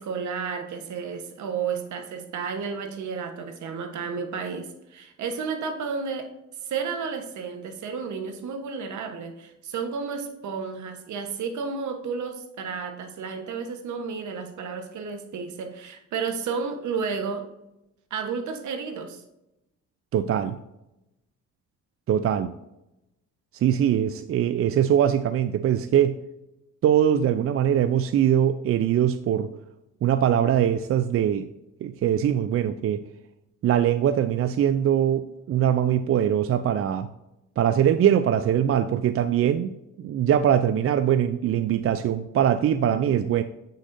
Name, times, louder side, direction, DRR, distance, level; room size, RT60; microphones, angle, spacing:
voice 1, 0.0-6.3 6.6-17.5 18.1-19.2, right 5 dB, 70° right, 6 dB, 1.2 m, -32 dB
voice 2, 20.1-20.6 22.1-22.5 23.5-26.2 26.8-29.5 30.0-31.5 31.8-33.0 33.6-37.1 37.6-43.4, right 10 dB, 50° right, 11 dB, 0.4 m, -22 dB
7.9 x 6.4 x 2.6 m, 0.90 s
cardioid pair, 90°, 30 cm